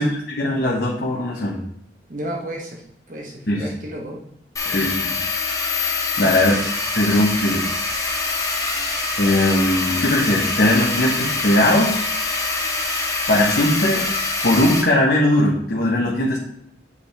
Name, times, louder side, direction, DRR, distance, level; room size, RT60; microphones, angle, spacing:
voice 1, 0.4-1.6 3.5-3.7 4.7-5.1 6.2-6.6 6.9-7.7 9.2-12.0 13.3-14.0 14.4-16.4, left 1 dB, 55° left, -4 dB, 1.1 m, -19 dB
voice 2, 2.1-2.8 3.1-4.2 4.6-4.9, right 1 dB, 45° right, -1 dB, 1.0 m, -32 dB
sound 1, 4.6-14.8, left 3 dB, 20° left, 1.0 m, -24 dB
8.4 x 5.0 x 3.4 m, 0.70 s
head